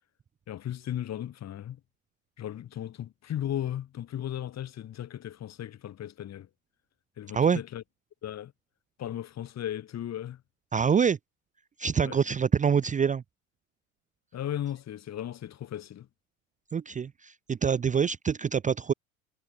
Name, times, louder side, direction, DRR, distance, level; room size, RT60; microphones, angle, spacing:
voice 1, 0.5-1.8 2.4-6.5 7.2-7.8 8.2-8.5 9.0-10.4 12.0-12.2 14.3-16.1, left 11 dB, 40° left, 5.1 m, -36 dB
voice 2, 10.7-11.2 11.8-13.2 16.7-18.9, right 7 dB, 20° right, 0.8 m, -25 dB
hypercardioid pair, 85°, 40 cm